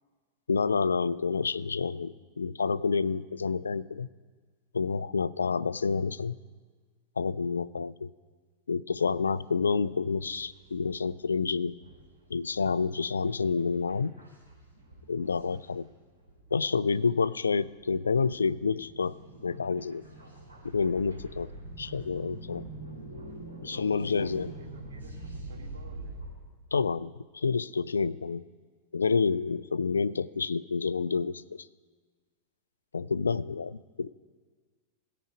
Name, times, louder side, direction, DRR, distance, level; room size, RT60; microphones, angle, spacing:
voice 1, 0.5-4.1 4.7-6.4 7.2-8.1 8.7-11.8 12.3-14.1 15.1-15.9 16.5-19.1 19.4-20.0 20.6-21.5 21.8-22.6 23.6-24.5 26.7-28.4 28.9-31.4 32.9-34.1, left 5 dB, 75° left, 19 dB, 0.3 m, -28 dB
sound 1, 9.1-9.5 9.9-11.1 11.4-11.5 11.7-16.5 17.0-17.1 17.5-26.3, right 2 dB, 85° right, 4.4 m, -45 dB
voice 2, 23.7-26.2 33.1-33.5, right 4 dB, 65° right, 3 dB, 1.7 m, -53 dB
14.5 x 8.6 x 5.1 m, 1.5 s
figure-of-eight pair, 90°, 0 cm